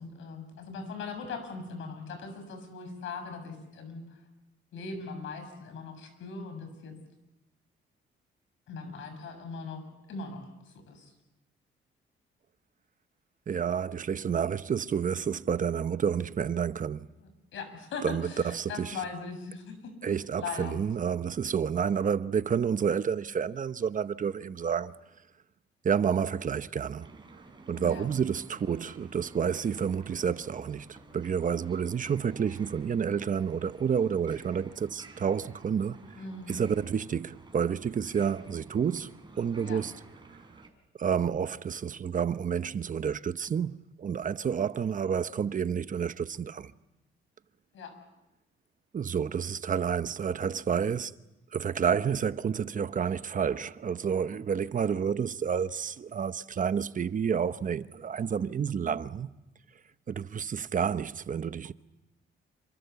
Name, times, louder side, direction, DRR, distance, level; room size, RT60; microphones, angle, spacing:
voice 1, 0.0-4.2 4.7-6.9 8.7-11.1 17.2-19.9 20.4-20.8 27.8-28.1 36.2-36.6 39.6-39.8 47.7-47.9, left 4 dB, 75° left, 7.0 m, -40 dB
voice 2, 13.5-17.1 18.0-19.0 20.0-25.0 25.8-27.1 27.7-30.9 31.1-36.2 36.5-39.1 39.4-39.9 41.0-46.7 48.9-51.1 51.5-59.3 60.1-61.7, right 7 dB, 40° right, 0.9 m, -29 dB
sound 1, 27.0-40.7, right 3 dB, 25° right, 5.0 m, -52 dB
28.0 x 25.5 x 7.0 m
cardioid pair, 90°, 20 cm